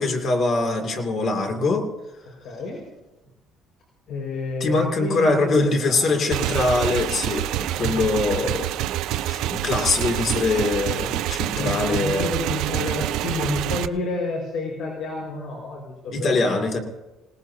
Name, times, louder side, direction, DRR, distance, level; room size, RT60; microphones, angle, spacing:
voice 1, 0.0-1.9 4.6-8.7 9.1-12.3 16.1-16.8, left 3 dB, 45° left, 3 dB, 2.6 m, -23 dB
voice 2, 2.4-2.8 4.1-6.2 7.8-7.9 11.5-16.6, left 2 dB, 60° left, 0 dB, 5.2 m, -30 dB
Motorcycle / Engine, 6.3-13.9, right 13 dB, 70° right, 0.6 m, -27 dB
27.5 x 18.5 x 2.8 m, 1.0 s
cardioid pair, 145°, 0 cm